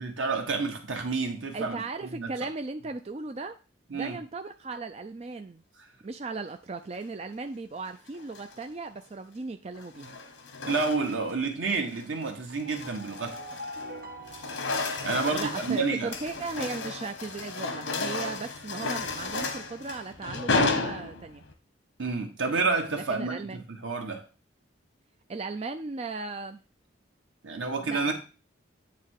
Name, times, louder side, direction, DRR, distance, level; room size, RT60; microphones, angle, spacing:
voice 1, 0.0-2.3 3.9-4.2 10.7-13.4 15.0-16.1 22.0-24.2 27.4-28.1, right 4 dB, 85° right, 1.5 m, -29 dB
voice 2, 1.5-3.6 3.9-5.6 6.0-10.2 15.3-21.4 23.1-23.6 25.3-26.6 27.8-28.1, right 3 dB, 30° right, 0.4 m, -37 dB
sound 1, 8.1-8.6 9.7-11.3 11.7-12.0 12.5-13.9 14.2-21.5, left 3 dB, 80° left, 1.2 m, -33 dB
sound 2, 12.6-16.6, equal, 50° right, 0.8 m, -44 dB
8.6 x 3.4 x 6.5 m
head